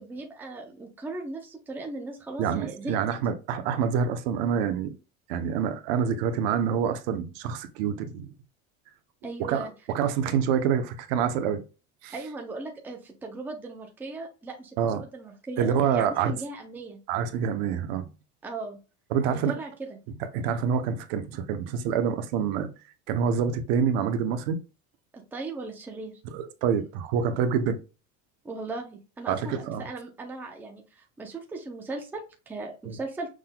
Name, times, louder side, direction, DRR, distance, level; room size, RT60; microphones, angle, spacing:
voice 1, 0.0-2.9 9.2-9.7 12.1-17.0 18.4-18.8 19.3-20.0 25.1-26.2 28.4-33.3, right 3 dB, 5° right, 0.6 m, -38 dB
voice 2, 2.4-5.0 5.3-8.3 9.5-11.6 12.0-12.1 14.8-15.0 15.6-16.3 17.1-18.1 19.1-19.6 20.3-22.7 23.1-24.6 26.2-27.8 29.3-29.8 32.9-33.0, right 7 dB, 65° right, 0.8 m, -27 dB
6.3 x 3.8 x 2.2 m
cardioid pair, 175°, 34 cm